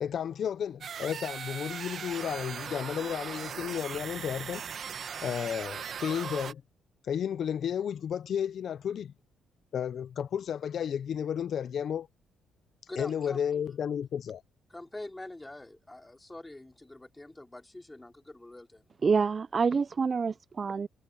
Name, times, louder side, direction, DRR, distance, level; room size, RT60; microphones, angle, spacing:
voice 1, 0.0-4.6 5.2-6.6 7.0-9.1 9.7-12.1 13.0-14.4, left 8 dB, 60° left, 0.5 m, -32 dB
sound 1, 0.8-6.5, right 7 dB, 55° right, 1.2 m, -39 dB
voice 2, 12.9-13.4 14.7-18.8, left 2 dB, 15° left, 4.6 m, -44 dB
voice 3, 19.0-20.9, right 5 dB, 40° right, 0.4 m, -27 dB
cardioid pair, 90°, 0 cm